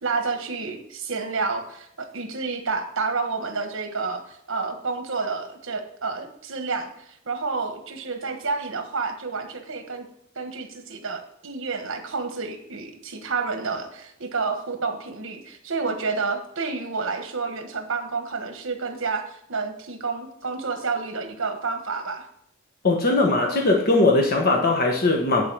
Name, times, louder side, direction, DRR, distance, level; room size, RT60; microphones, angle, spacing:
voice 1, 0.0-10.0 10.3-22.3, right 4 dB, 65° right, 6 dB, 1.3 m, -29 dB
voice 2, 22.8-25.4, left 2 dB, 45° left, 0 dB, 1.2 m, -20 dB
9.8 x 4.6 x 6.2 m, 0.72 s
head